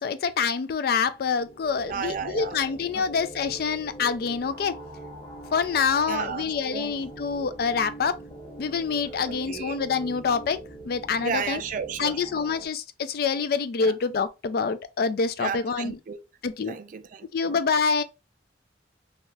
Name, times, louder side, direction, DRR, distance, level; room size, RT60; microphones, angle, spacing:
voice 1, 0.0-4.8 5.5-8.1 8.6-10.6 10.8-11.6 12.0-16.0 16.4-16.8 17.3-18.0, left 5 dB, 55° left, 0.3 m, -26 dB
sound 1, 1.1-12.6, right 1 dB, 35° left, 0.8 m, -43 dB
voice 2, 1.8-2.6 3.0-3.1 6.1-6.9 9.3-9.8 11.2-12.2 13.8-13.9 15.4-16.2 16.7-17.6, right 6 dB, 45° right, 0.3 m, -33 dB
2.8 x 2.3 x 3.2 m
head